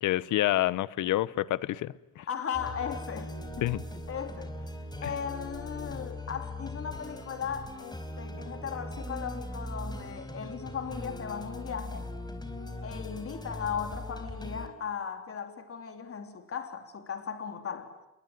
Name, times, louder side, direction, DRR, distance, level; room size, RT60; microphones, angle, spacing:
voice 1, 0.0-2.2 3.6-3.8 5.0-5.1, left 14 dB, 80° left, 0.9 m, -28 dB
voice 2, 2.3-3.7 4.1-4.5 5.0-12.1 12.8-17.9, left 7 dB, 50° left, 3.5 m, -37 dB
sound 1, 2.5-14.7, left 2 dB, 15° left, 4.4 m, -40 dB
27.5 x 22.5 x 9.2 m
cardioid pair, 90°, 30 cm